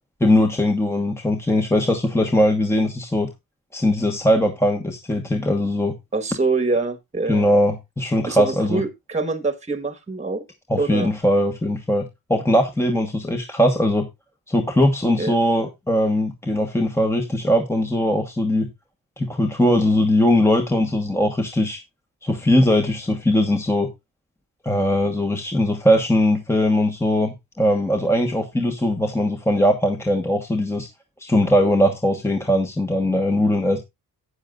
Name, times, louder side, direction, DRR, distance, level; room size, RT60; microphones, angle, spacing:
voice 1, 0.2-3.3 3.7-5.9 7.3-8.8 10.7-12.0 12.3-14.1 14.5-18.7 19.2-21.8 22.2-23.9 24.6-30.9 31.2-33.8, left 1 dB, 5° left, 1.2 m, -20 dB
voice 2, 6.1-7.5 8.3-10.4 10.7-11.1 15.2-15.3, right 3 dB, 20° right, 1.4 m, -25 dB
13.0 x 9.0 x 2.4 m
wide cardioid pair, 140°, 36 cm